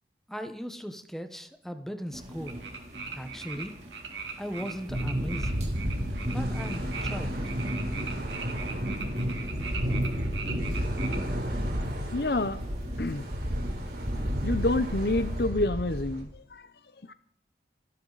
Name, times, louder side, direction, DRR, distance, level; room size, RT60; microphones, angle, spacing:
voice 1, 0.3-2.6 3.1-3.7 4.4-5.7 6.3-7.4, equal, ahead, 7 dB, 1.2 m, -38 dB
sound 1, 2.1-15.4, equal, 40° right, 3.4 m, -35 dB
sound 2, 2.5-3.7 3.9-11.2, right 6 dB, 85° right, 2.6 m, -39 dB
sound 3, 5.2-16.2, equal, 60° right, 3.9 m, -34 dB
voice 2, 12.1-12.6 13.0-13.3 14.4-16.6 17.1-17.2, left 2 dB, 60° left, 13 dB, 0.8 m, -28 dB
27.5 x 12.0 x 4.1 m, 0.68 s
head